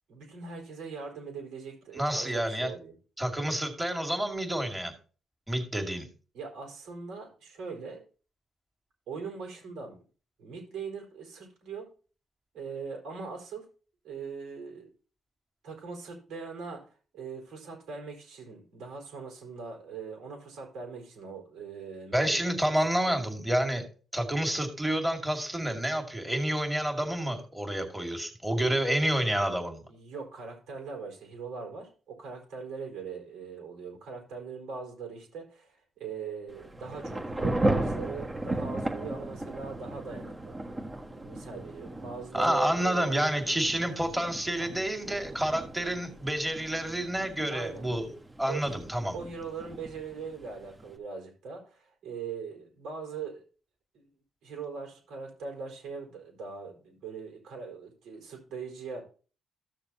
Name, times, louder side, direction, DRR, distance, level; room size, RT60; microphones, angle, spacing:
voice 1, 0.1-2.9 6.3-8.0 9.1-10.0 10.4-11.9 12.5-13.7 14.0-14.9 15.6-22.5 23.0-23.1 29.9-40.5 41.1-43.4 44.6-44.7 47.5-47.8 48.5-48.8 49.1-53.4 53.9-54.1 54.4-59.0, right 5 dB, 85° right, 1 dB, 4.5 m, -41 dB
voice 2, 1.9-2.7 3.2-4.9 5.5-6.1 22.1-23.8 24.1-29.9 42.3-48.1 48.4-49.1, right 1 dB, 10° right, 3 dB, 2.3 m, -29 dB
Thunder / Rain, 36.5-51.0, right 2 dB, 25° right, 1.4 m, -36 dB
14.5 x 6.6 x 2.9 m, 0.37 s
cardioid pair, 90°, 0 cm